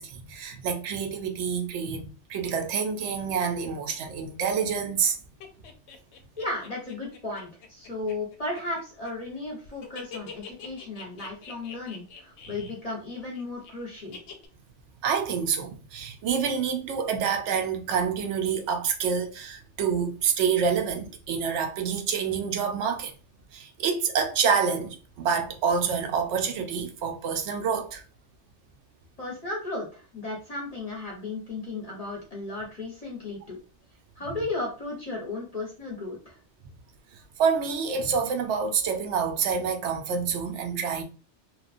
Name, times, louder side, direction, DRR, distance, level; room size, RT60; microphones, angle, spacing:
voice 1, 0.0-5.2 15.0-23.1 23.5-28.0 37.1-41.0, right 6 dB, 75° right, 0.9 m, -27 dB
sound 1, 5.4-9.4 9.7-13.7 14.1-14.5, left 5 dB, 70° left, 0.8 m, -44 dB
voice 2, 6.4-14.2 29.2-33.6 34.2-36.4, left 2 dB, 40° left, 0.8 m, -35 dB
2.9 x 2.2 x 2.4 m
omnidirectional pair, 1.2 m